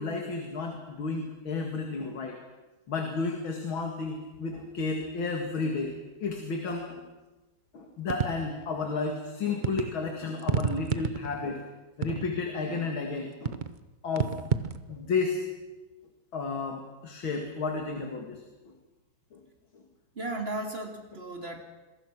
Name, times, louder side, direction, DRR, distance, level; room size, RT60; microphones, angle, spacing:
voice 1, 0.0-2.4 2.9-5.9 6.2-7.0 7.7-11.6 12.0-13.6 14.0-14.4 14.9-15.4 16.3-18.4 19.3-19.4, left 4 dB, 70° left, 3 dB, 3.0 m, -32 dB
sound 1, 8.1-8.7 9.6-9.9 10.4-11.5 12.0-12.5 13.5-13.8 14.2-14.8, right 5 dB, 55° right, 0.5 m, -30 dB
voice 2, 20.1-21.6, right 2 dB, 30° right, 3 dB, 3.1 m, -35 dB
27.0 x 22.5 x 6.1 m, 1.1 s
omnidirectional pair, 2.3 m